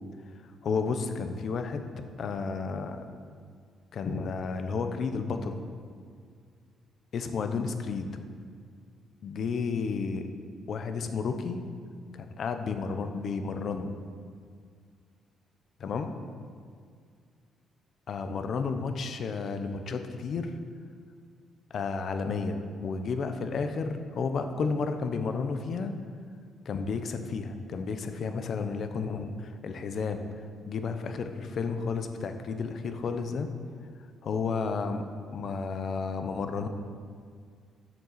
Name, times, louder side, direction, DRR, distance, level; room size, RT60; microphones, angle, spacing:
voice 1, 0.6-1.9 2.2-3.0 3.9-5.6 7.1-8.1 9.2-10.3 10.7-11.6 12.1-13.9 15.8-16.3 18.1-20.5 21.7-26.0 26.6-30.3 30.7-33.5 34.2-35.0 35.3-36.7, left 5 dB, 60° left, 7 dB, 1.0 m, -32 dB
8.9 x 7.0 x 8.1 m, 2.1 s
cardioid pair, 90°, 0 cm